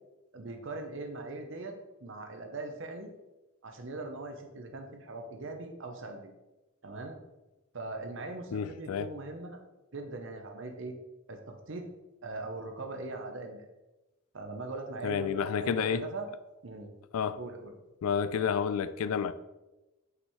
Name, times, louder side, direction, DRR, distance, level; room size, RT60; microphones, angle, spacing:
voice 1, 0.3-1.7 2.0-3.1 3.6-6.3 6.8-7.2 7.7-9.6 9.9-11.0 11.3-11.9 12.2-13.7 14.3-16.3 16.6-16.9 17.3-17.7, right 2 dB, 60° right, 0.8 m, -40 dB
voice 2, 8.5-9.1 15.0-16.1 17.1-17.4 18.0-19.3, left 7 dB, 80° left, 0.3 m, -30 dB
5.9 x 5.5 x 3.1 m
head